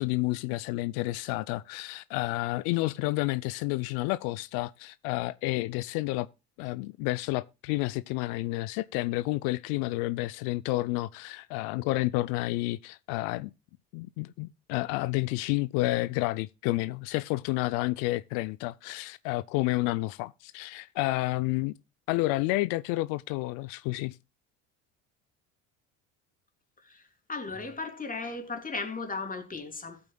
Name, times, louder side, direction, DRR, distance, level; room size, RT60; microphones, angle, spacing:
voice 1, 0.0-6.3 6.6-13.5 13.9-21.7 22.1-24.2, left 19 dB, 85° left, 0.5 m, -30 dB
voice 2, 26.8-30.0, left 4 dB, 25° left, 3.0 m, -36 dB
15.5 x 8.6 x 2.2 m
supercardioid pair, 95°, 35 cm